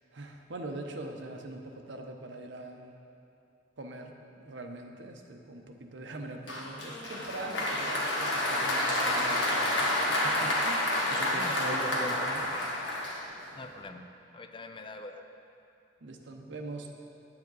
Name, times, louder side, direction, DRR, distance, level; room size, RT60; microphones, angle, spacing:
voice 1, 0.1-2.9 3.8-12.5 16.0-16.9, right 2 dB, 75° right, 3 dB, 0.8 m, -42 dB
Applause, 6.5-13.6, left 1 dB, 75° left, 1.5 m, -29 dB
voice 2, 11.3-12.3 13.5-14.1 14.3-15.2, left 2 dB, 25° left, 6 dB, 0.5 m, -42 dB
9.3 x 8.8 x 4.0 m, 2.7 s
head